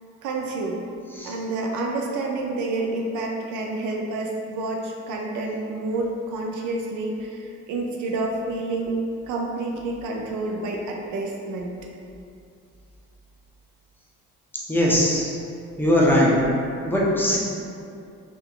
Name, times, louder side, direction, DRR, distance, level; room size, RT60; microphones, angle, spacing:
voice 1, 0.2-0.8 1.2-9.0 9.3-11.7, right 2 dB, 80° right, 0 dB, 0.5 m, -29 dB
voice 2, 14.7-15.3 15.8-16.3 16.8-17.4, left 1 dB, 5° left, -6 dB, 0.6 m, -20 dB
2.8 x 2.4 x 3.6 m, 2.5 s
cardioid pair, 90°, 30 cm